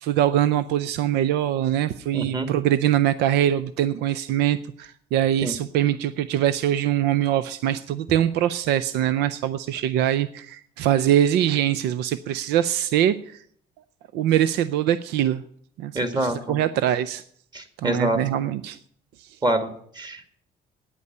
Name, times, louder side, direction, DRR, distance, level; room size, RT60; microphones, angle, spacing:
voice 1, 0.0-13.4 14.1-15.4 15.8-17.2 17.8-18.8 19.2-19.4, right 11 dB, 85° right, 15 dB, 0.5 m, -23 dB
voice 2, 2.1-2.5 5.4-5.6 15.9-16.6 17.5-18.2 19.4-20.2, right 1 dB, 25° right, 8 dB, 1.9 m, -26 dB
9.5 x 8.4 x 9.4 m, 0.64 s
cardioid pair, 110°, 17 cm